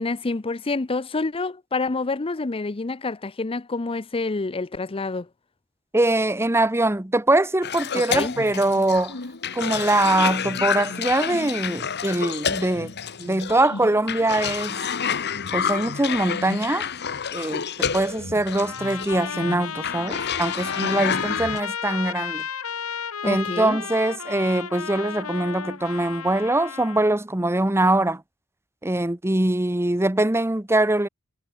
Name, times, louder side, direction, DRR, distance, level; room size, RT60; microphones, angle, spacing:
voice 1, 0.0-5.3 8.0-8.4 23.2-23.8, left 3 dB, 25° left, 0.6 m, -28 dB
voice 2, 5.9-9.2 9.5-12.9 13.2-14.8 15.5-16.9 17.3-22.4 23.2-28.2 28.8-31.1, right 1 dB, 10° right, 1.0 m, -23 dB
Cough, 7.6-21.6, left 7 dB, 50° left, 1.4 m, -29 dB
Trumpet, 18.5-27.2, left 7 dB, 75° left, 1.5 m, -33 dB
head